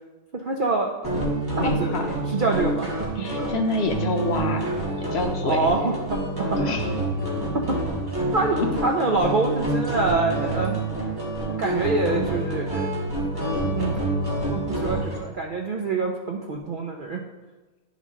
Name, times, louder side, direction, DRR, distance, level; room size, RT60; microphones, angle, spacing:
voice 1, 0.3-0.9 1.6-3.5 5.4-6.8 7.5-7.8 8.3-10.8 11.6-12.9 13.8-13.9 14.5-17.2, right 3 dB, 60° right, 1 dB, 0.5 m, -26 dB
sound 1, 1.0-15.2, right 1 dB, 15° right, 1.5 m, -27 dB
voice 2, 1.6-2.1 3.2-4.7 5.0-5.7 6.6-6.9 8.6-8.7, left 4 dB, 60° left, 3 dB, 0.8 m, -27 dB
11.0 x 3.8 x 3.6 m, 1.2 s
omnidirectional pair, 1.5 m